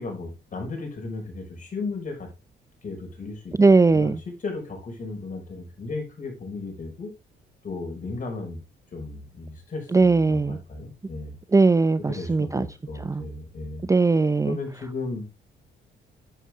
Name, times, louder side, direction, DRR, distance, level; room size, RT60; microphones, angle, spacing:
voice 1, 0.0-2.3 2.8-7.1 7.6-8.6 8.9-11.3 12.1-13.9 14.4-15.3, left 3 dB, 40° left, 2 dB, 5.7 m, -35 dB
voice 2, 3.6-4.2 9.9-10.6 11.5-12.7 13.0-13.3 13.9-14.6, right 3 dB, 15° right, 14 dB, 0.5 m, -19 dB
10.5 x 8.2 x 3.6 m, 0.26 s
cardioid pair, 90°, 20 cm